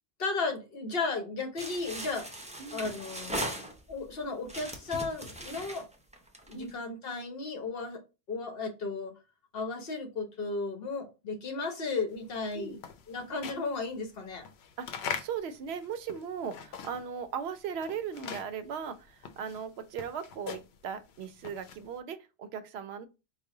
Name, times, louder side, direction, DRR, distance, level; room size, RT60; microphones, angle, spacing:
voice 1, 0.2-2.3 2.7-3.6 3.9-5.9 6.5-8.0 8.3-9.1 9.5-12.8 13.1-14.4, left 3 dB, 70° left, 1.1 m, -34 dB
sound 1, 1.6-4.1 4.5-6.7, right 1 dB, 10° right, 0.5 m, -39 dB
voice 2, 2.6-3.0 6.5-6.8 12.5-12.8 14.8-23.1, right 7 dB, 90° right, 0.8 m, -38 dB
sound 2, 12.2-17.2 17.5-22.0, left 7 dB, 90° left, 0.8 m, -42 dB
4.8 x 2.1 x 3.7 m
omnidirectional pair, 1.0 m